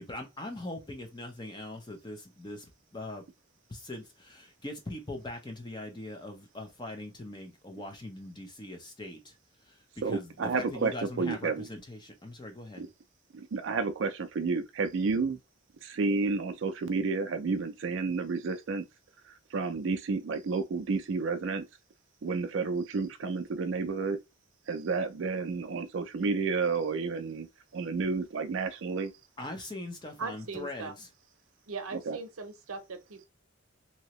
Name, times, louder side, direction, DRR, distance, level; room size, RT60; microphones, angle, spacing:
voice 1, 0.0-3.2 3.7-9.4 9.6-12.9 29.4-31.1, left 1 dB, 20° left, 0.6 m, -41 dB
voice 2, 10.0-11.7 12.8-12.9 13.3-15.4 15.8-18.9 19.2-21.7 22.2-24.2 24.7-29.1 32.1-32.2, right 4 dB, 60° right, 0.4 m, -31 dB
voice 3, 30.2-30.9 31.7-33.3, right 4 dB, 85° right, 0.7 m, -39 dB
2.8 x 2.7 x 3.0 m
head